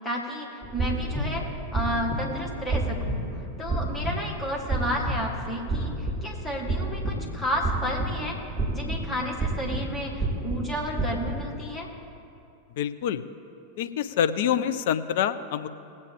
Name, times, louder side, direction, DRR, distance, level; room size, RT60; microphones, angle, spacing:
voice 1, 0.0-1.5 1.7-8.4 8.7-11.9, equal, 15° left, -1 dB, 1.8 m, -32 dB
sound 1, 0.6-11.5, right 2 dB, 5° right, 2.4 m, -30 dB
voice 2, 12.8-13.2 13.8-15.7, left 9 dB, 55° left, 11 dB, 0.5 m, -26 dB
18.5 x 8.2 x 3.5 m, 2.6 s
figure-of-eight pair, 90°, 0 cm